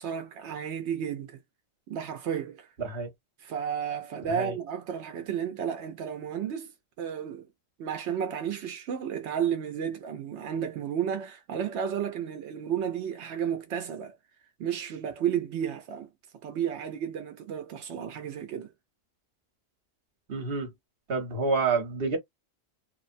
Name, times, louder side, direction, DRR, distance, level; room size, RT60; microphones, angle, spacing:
voice 1, 0.0-1.4 1.9-2.7 3.4-7.5 7.8-14.1 14.6-16.1 16.4-18.7, right 8 dB, 90° right, 0.9 m, -32 dB
voice 2, 2.8-3.1 4.4-4.5 20.3-20.7 21.1-22.2, right 4 dB, 60° right, 1.2 m, -28 dB
3.2 x 2.0 x 2.6 m
omnidirectional pair, 1.1 m